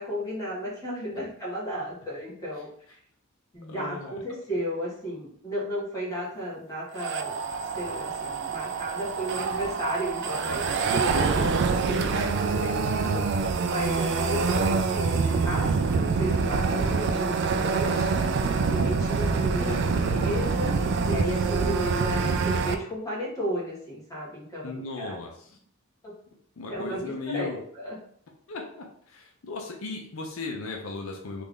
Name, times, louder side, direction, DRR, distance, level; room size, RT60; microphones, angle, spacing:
voice 1, 0.0-2.7 3.5-7.3 7.7-11.6 11.9-13.2 13.6-18.3 18.7-20.8 21.0-25.1 26.0-26.1 26.7-28.0, equal, 15° left, -6 dB, 1.3 m, -34 dB
voice 2, 3.7-4.2 11.9-12.7 19.6-20.2 24.6-25.3 26.6-27.6 28.5-31.4, left 3 dB, 75° left, 1 dB, 0.6 m, -37 dB
sound 1, 6.9-22.8, right 4 dB, 55° right, 0.3 m, -26 dB
3.3 x 2.5 x 3.6 m, 0.62 s
head